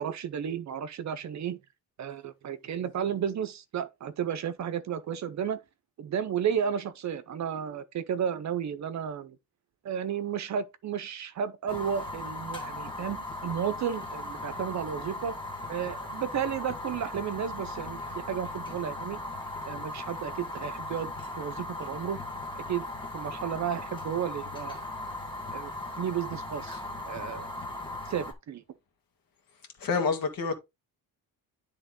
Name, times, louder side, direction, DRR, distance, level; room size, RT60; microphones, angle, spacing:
voice 1, 0.0-1.6 2.0-5.6 6.0-9.4 9.8-15.3 15.7-19.2 19.6-21.1 21.4-22.2 22.5-22.9 23.1-24.8 25.5-25.7 26.0-26.8 27.1-27.5 28.1-28.6, right 8 dB, 45° right, 0.7 m, -33 dB
Fire, 11.7-28.3, left 2 dB, 10° left, 1.5 m, -38 dB
voice 2, 29.8-30.6, left 5 dB, 60° left, 2.0 m, -27 dB
10.5 x 3.5 x 3.8 m
cardioid pair, 170°, 39 cm